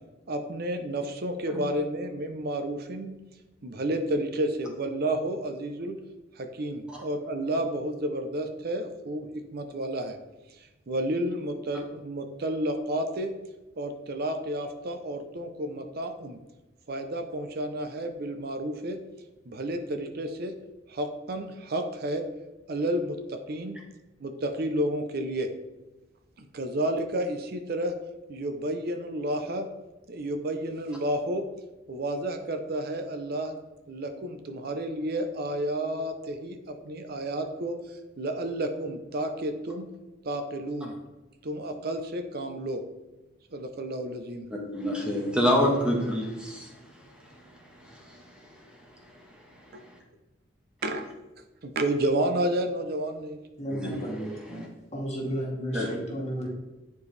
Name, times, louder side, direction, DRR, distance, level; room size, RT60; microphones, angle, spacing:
voice 1, 0.3-3.2 3.6-6.0 6.4-10.2 10.5-13.3 13.8-16.4 16.9-19.0 19.5-20.5 20.9-22.2 22.7-23.8 24.2-25.5 26.4-27.9 28.3-29.7 30.1-31.4 31.9-33.5 33.9-39.9 40.2-40.9 41.4-42.8 43.5-44.5 50.8-51.1 51.6-53.4, right 1 dB, 55° right, 6 dB, 0.6 m, -31 dB
voice 2, 44.5-48.9 49.8-49.9 53.7-53.9 54.6-54.7 55.7-55.9, equal, 5° right, -2 dB, 1.3 m, -29 dB
voice 3, 53.6-54.6 54.9-56.5, equal, 35° left, -3 dB, 2.1 m, -33 dB
9.7 x 4.5 x 3.3 m, 1.1 s
head